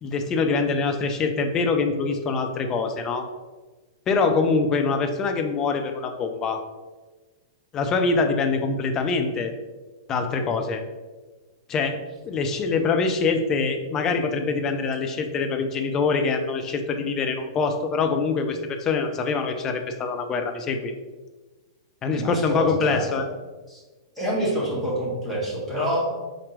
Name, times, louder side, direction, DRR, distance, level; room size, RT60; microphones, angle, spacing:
voice 1, 0.0-3.3 4.1-6.6 7.7-9.5 10.1-10.8 11.7-20.9 22.0-23.3, left 4 dB, 25° left, 5 dB, 0.4 m, -24 dB
voice 2, 22.1-23.2 23.7-23.8 24.2-26.2, right 1 dB, 5° left, -7 dB, 1.4 m, -27 dB
4.2 x 2.5 x 3.3 m, 1.2 s
figure-of-eight pair, 105°, 2 cm